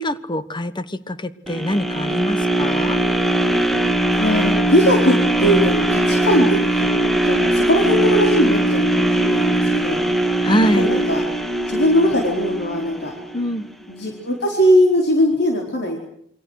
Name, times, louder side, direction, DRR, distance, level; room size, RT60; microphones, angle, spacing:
voice 1, 0.0-3.0 10.4-10.9 13.3-13.7, equal, 25° left, 13 dB, 1.2 m, -23 dB
sound 1, 1.5-13.6 14.1-14.2, right 1 dB, ahead, 1.7 m, -20 dB
voice 2, 4.2-6.9 7.2-10.0 10.3-10.5 10.8-11.2 11.7-13.1 13.9-16.0, equal, 60° left, 0 dB, 4.4 m, -20 dB
28.0 x 24.0 x 6.5 m, 0.69 s
head